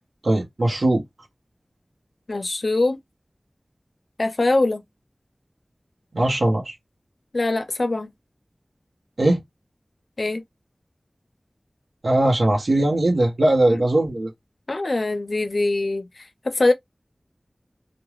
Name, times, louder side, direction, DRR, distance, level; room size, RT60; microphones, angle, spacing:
voice 1, 0.2-1.0 6.1-6.7 9.2-9.4 12.0-14.3, right 1 dB, 85° right, 0.7 m, -20 dB
voice 2, 2.3-3.0 4.2-4.8 7.3-8.1 10.2-10.4 13.7-13.8 14.7-16.7, left 2 dB, 70° left, 0.5 m, -23 dB
3.0 x 2.1 x 2.3 m
wide cardioid pair, 45°, 0 cm